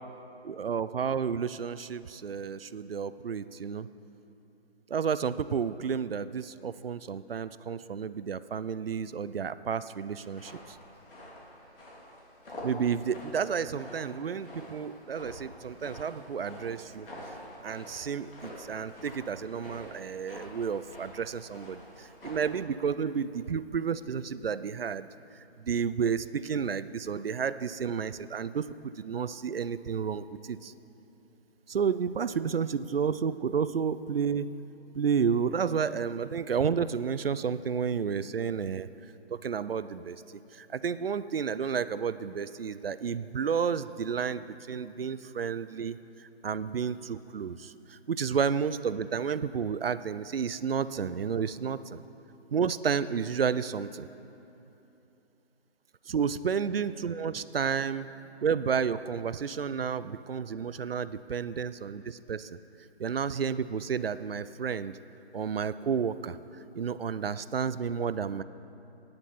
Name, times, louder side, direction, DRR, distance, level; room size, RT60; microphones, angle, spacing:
voice 1, 0.4-3.9 4.9-10.8 12.6-17.1 17.6-25.1 25.6-30.7 31.7-34.5 34.9-38.9 39.3-52.0 52.5-54.1 56.1-58.1 58.4-62.6 63.0-64.9 65.3-66.4 66.7-68.4, right 6 dB, 60° right, 15 dB, 0.4 m, -31 dB
sound 1, 10.2-22.6, left 1 dB, 55° left, 3.1 m, -47 dB
15.5 x 9.7 x 4.2 m, 3.0 s
figure-of-eight pair, 160°, 33 cm